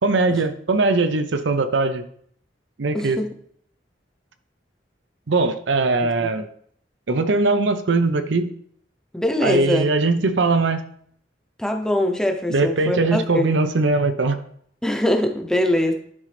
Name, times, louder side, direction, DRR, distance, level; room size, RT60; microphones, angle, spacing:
voice 1, 0.0-2.0 2.8-3.2 5.3-6.5 7.1-8.5 9.4-10.8 12.5-14.4, right 3 dB, 85° right, 9 dB, 0.6 m, -20 dB
voice 2, 2.9-3.3 9.1-9.9 11.6-13.5 14.8-15.9, left 1 dB, 5° left, 4 dB, 0.7 m, -22 dB
11.0 x 3.8 x 3.3 m, 0.64 s
head